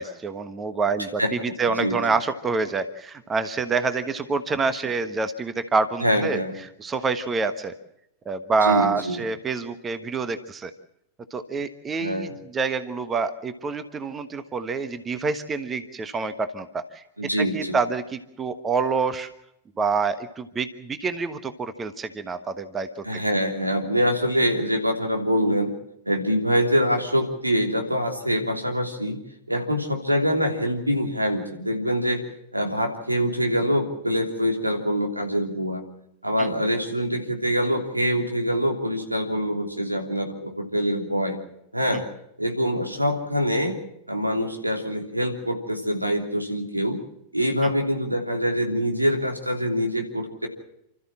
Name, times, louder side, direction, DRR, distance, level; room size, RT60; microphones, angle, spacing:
voice 1, 0.0-6.4 6.8-7.7 8.2-10.7 11.3-17.0 17.4-19.3 19.8-23.0 36.4-36.5, right 4 dB, 20° right, 11 dB, 1.3 m, -27 dB
voice 2, 1.7-2.0 6.0-6.5 8.6-9.2 12.0-12.3 17.2-17.8 23.0-25.7 26.0-29.2 29.5-32.2 32.5-35.8 36.2-41.4 41.7-42.0 42.4-43.7 44.1-47.0 47.3-50.5, equal, 85° right, 3 dB, 3.1 m, -24 dB
29.5 x 13.5 x 7.3 m, 0.79 s
figure-of-eight pair, 90°, 0 cm